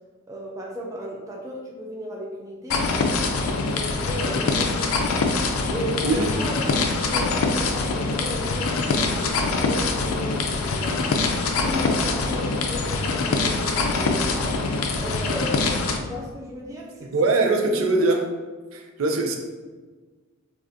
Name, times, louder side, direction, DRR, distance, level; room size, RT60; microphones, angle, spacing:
voice 1, 0.3-11.4 11.6-14.7 15.0-17.1, equal, 15° right, -2 dB, 0.3 m, -35 dB
sound 1, 2.7-16.0, left 3 dB, 85° left, 0.4 m, -24 dB
voice 2, 17.1-18.3 18.7-19.4, right 3 dB, 80° right, 2 dB, 0.4 m, -21 dB
3.5 x 2.4 x 2.6 m, 1.4 s
head